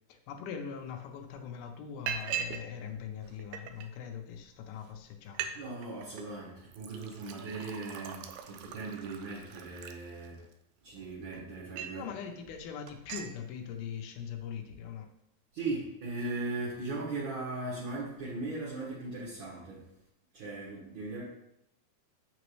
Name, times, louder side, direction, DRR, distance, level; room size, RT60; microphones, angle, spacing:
voice 1, 0.1-5.6 11.9-15.1, left 7 dB, 80° left, 5 dB, 2.5 m, -41 dB
Liquid, 0.9-1.0 1.3-1.6 2.1-2.7 3.0-3.9 4.5-4.6 4.9-5.0 5.2-5.5 5.8-6.2 6.7-10.5 11.1-12.1 12.5-12.6 12.9-13.3, right 8 dB, 85° right, 2.4 m, -40 dB
voice 2, 5.6-10.5 10.8-12.1 15.5-19.9 20.3-21.2, right 2 dB, 55° right, -7 dB, 2.3 m, -38 dB
7.4 x 6.0 x 3.2 m, 0.81 s
omnidirectional pair, 4.4 m